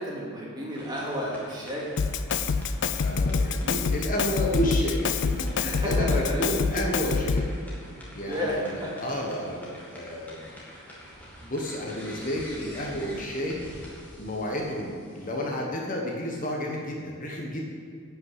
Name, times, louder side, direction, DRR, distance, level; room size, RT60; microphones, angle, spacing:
voice 1, 0.0-1.9 5.7-6.9 8.3-9.2, equal, 20° right, -4 dB, 2.3 m, -32 dB
sound 1, 0.7-15.5, equal, 10° left, 2.0 m, -47 dB
Drum kit, 2.0-7.6, left 4 dB, 55° left, 0.4 m, -26 dB
voice 2, 3.0-7.5 7.9-10.5 11.4-13.6 14.2-17.6, equal, 40° left, 0 dB, 1.2 m, -31 dB
11.5 x 5.8 x 8.0 m, 2.2 s
head